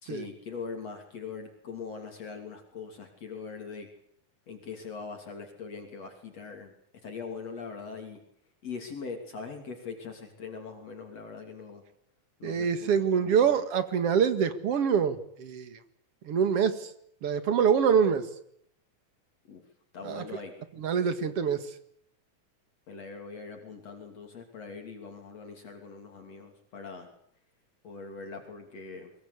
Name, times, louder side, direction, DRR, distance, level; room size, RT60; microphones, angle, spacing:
voice 1, 0.0-3.9 4.5-6.7 7.0-8.2 8.6-11.8 12.4-13.6 19.5-19.6 19.9-20.6 21.2-21.3 22.9-27.1 27.8-29.1, left 5 dB, 55° left, 3 dB, 4.0 m, -41 dB
voice 2, 12.4-15.8 16.3-16.9 17.2-18.2 20.0-20.2 20.8-21.6, right 7 dB, 50° right, 11 dB, 2.7 m, -25 dB
23.0 x 22.5 x 8.3 m, 0.69 s
omnidirectional pair, 3.5 m